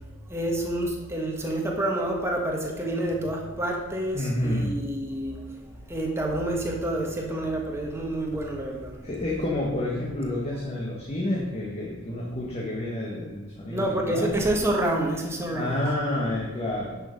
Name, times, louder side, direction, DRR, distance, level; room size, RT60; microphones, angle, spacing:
voice 1, 0.3-5.6 5.9-8.9 13.7-15.8, right 1 dB, 10° right, 0 dB, 1.5 m, -28 dB
voice 2, 4.1-4.8 9.0-14.4 15.5-17.0, left 1 dB, 30° left, -4 dB, 1.4 m, -29 dB
10.5 x 6.7 x 5.3 m, 1.1 s
head